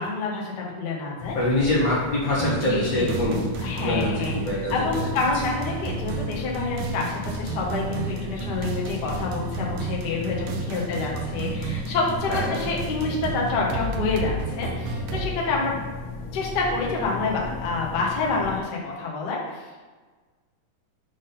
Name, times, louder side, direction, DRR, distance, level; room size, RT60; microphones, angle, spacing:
voice 1, 0.0-1.3 2.4-3.1 3.6-4.3 4.7-15.7 16.3-19.6, left 3 dB, 70° left, -3 dB, 1.0 m, -28 dB
sound 1, 1.2-18.6, left 4 dB, 90° left, 1.2 m, -35 dB
voice 2, 1.3-5.0 12.3-12.5, left 1 dB, 45° left, -6 dB, 1.1 m, -25 dB
sound 2, 2.4-15.3, right 6 dB, 90° right, 2.3 m, -33 dB
6.1 x 3.9 x 5.5 m, 1.3 s
omnidirectional pair, 3.9 m